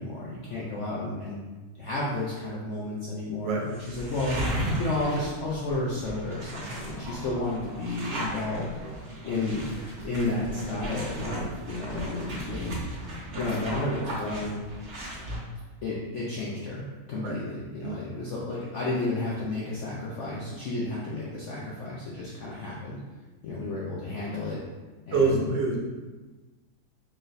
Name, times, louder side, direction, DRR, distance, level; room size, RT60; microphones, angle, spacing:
voice 1, 0.0-1.4 1.7-4.4 4.8-8.7 9.2-9.6 10.0-13.1 13.4-14.6 15.8-23.0 23.4-24.6 25.1-25.4, left 2 dB, 70° left, -6 dB, 0.7 m, -32 dB
sound 1, 3.7-15.4, right 1 dB, 55° right, 1.7 m, -36 dB
voice 2, 17.8-18.1 25.1-25.8, right 3 dB, 90° right, -2 dB, 1.5 m, -26 dB
4.7 x 3.2 x 2.5 m, 1.2 s
omnidirectional pair, 1.9 m